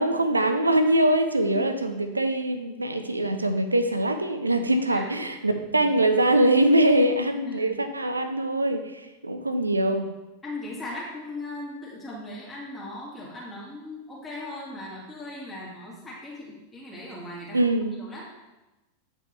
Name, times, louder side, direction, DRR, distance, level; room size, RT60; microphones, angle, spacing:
voice 1, 0.0-10.1 17.5-18.0, right 1 dB, 80° right, 8 dB, 0.5 m, -23 dB
voice 2, 5.4-5.9 7.4-7.7 10.4-17.7 18.0-18.2, left 1 dB, 10° left, -6 dB, 1.9 m, -38 dB
8.3 x 5.3 x 3.2 m, 1.0 s
figure-of-eight pair, 90°, 0 cm